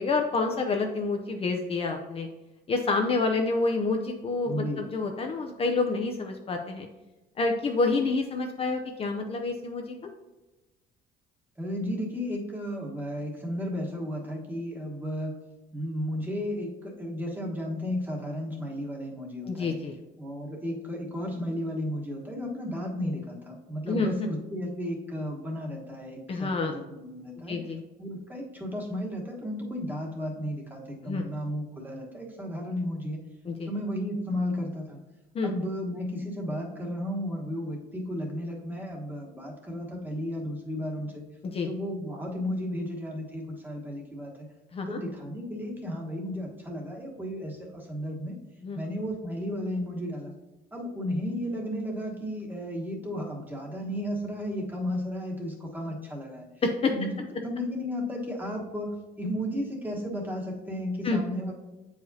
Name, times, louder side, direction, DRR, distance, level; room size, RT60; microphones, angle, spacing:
voice 1, 0.0-2.3 2.7-6.9 7.4-9.9 19.5-20.0 23.9-24.3 26.3-26.7 27.5-27.8 31.0-31.3 33.5-33.7 35.3-35.5 41.4-41.7 44.7-45.0 48.6-48.8 56.6-56.9 61.0-61.2, left 3 dB, 35° left, 3 dB, 0.6 m, -28 dB
voice 2, 4.4-4.9 11.6-15.4 15.7-19.8 20.2-27.6 28.0-33.2 33.7-35.0 35.4-41.2 41.6-44.5 44.9-48.4 48.7-50.3 50.7-56.5 56.8-61.5, equal, 10° right, -1 dB, 1.3 m, -34 dB
7.9 x 4.8 x 2.7 m, 1.1 s
cardioid pair, 110°, 17 cm